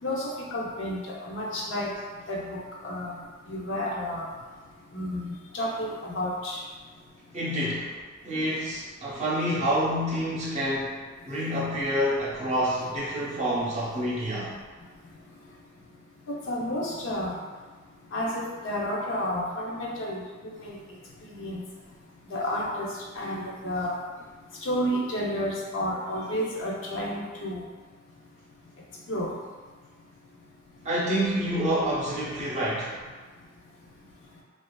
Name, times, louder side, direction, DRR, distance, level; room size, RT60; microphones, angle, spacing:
voice 1, 0.0-1.9 2.3-3.2 3.5-4.3 4.9-6.6 16.3-17.4 18.1-20.2 20.5-20.8 21.3-21.6 22.3-22.9 23.2-23.9 24.6-27.6 29.1-29.3, equal, 60° left, -3 dB, 0.5 m, -31 dB
voice 2, 7.3-8.0 8.2-10.9 11.3-14.5 30.8-33.0, equal, 35° right, -7 dB, 0.7 m, -27 dB
2.8 x 2.4 x 2.2 m, 1.4 s
head